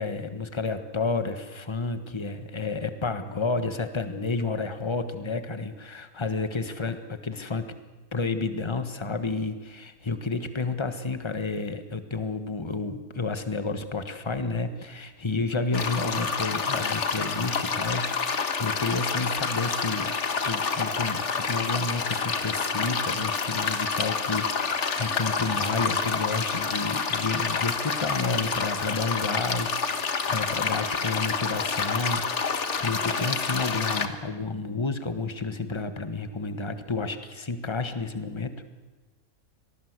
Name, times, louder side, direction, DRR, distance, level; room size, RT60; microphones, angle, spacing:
voice 1, 0.0-7.7 8.1-38.6, left 3 dB, 20° left, 9 dB, 1.4 m, -31 dB
sound 1, 15.7-34.1, left 5 dB, 55° left, 1.7 m, -28 dB
25.5 x 19.0 x 8.2 m, 1.3 s
omnidirectional pair, 1.5 m